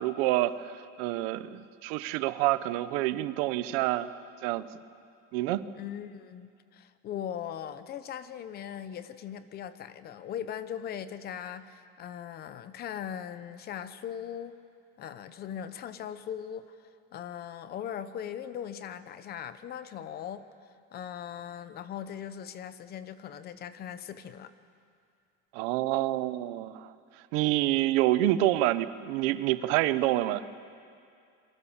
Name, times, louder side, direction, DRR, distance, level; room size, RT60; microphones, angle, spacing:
voice 1, 0.0-4.7 5.3-5.6 25.5-26.9 27.3-30.4, right 15 dB, 80° right, 14 dB, 1.0 m, -27 dB
voice 2, 5.7-14.5 15.0-24.5, left 9 dB, 35° left, 12 dB, 0.9 m, -39 dB
27.5 x 23.5 x 7.3 m, 2.3 s
cardioid pair, 175°, 29 cm